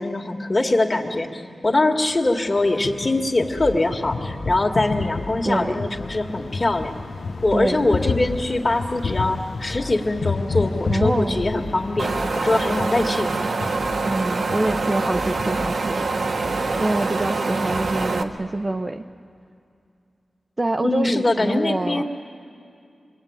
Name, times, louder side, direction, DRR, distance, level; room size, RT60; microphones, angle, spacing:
voice 1, 0.0-7.0 7.4-13.3 20.8-22.0, left 2 dB, 35° left, 3 dB, 2.1 m, -22 dB
sound 1, 2.1-12.2, left 4 dB, 85° left, 0.8 m, -30 dB
sound 2, 3.4-18.2, left 2 dB, 60° left, 1.3 m, -37 dB
voice 2, 5.4-5.9 7.5-7.8 10.9-11.5 14.0-16.0 16.8-19.0 20.6-22.0, right 2 dB, 25° right, 7 dB, 0.7 m, -25 dB
Wind, 12.0-18.2, right 3 dB, 70° right, 1.3 m, -25 dB
27.0 x 22.5 x 8.9 m, 2.4 s
wide cardioid pair, 110°, 0 cm